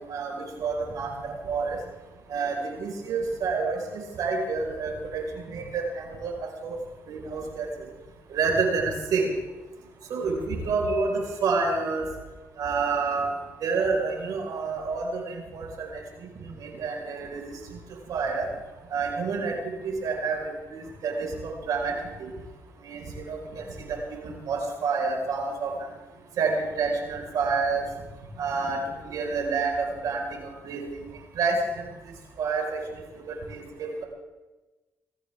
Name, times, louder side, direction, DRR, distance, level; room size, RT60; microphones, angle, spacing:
voice 1, 0.0-1.8 2.3-6.8 7.1-7.7 8.3-9.3 10.1-12.1 12.6-13.3 13.6-16.0 16.4-17.4 18.1-18.5 18.9-22.3 22.8-25.7 26.4-27.9 28.4-30.2 30.6-31.0 31.3-31.9 32.4-32.8 33.3-34.0, right 4 dB, 75° right, 0 dB, 5.2 m, -29 dB
23.5 x 15.0 x 3.7 m, 1.2 s
supercardioid pair, 60°, 6 cm